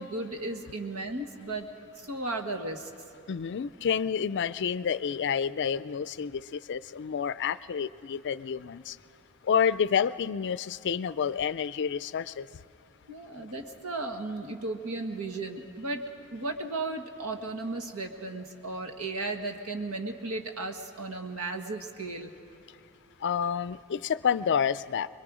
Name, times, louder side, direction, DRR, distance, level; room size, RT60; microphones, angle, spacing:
voice 1, 0.0-1.7 2.0-2.9 13.1-16.0 16.3-22.3, right 2 dB, 85° right, 4 dB, 1.7 m, -35 dB
voice 2, 3.3-9.0 9.4-12.5 23.2-25.1, left 7 dB, 55° left, 16 dB, 0.4 m, -29 dB
26.0 x 22.0 x 5.0 m, 2.8 s
head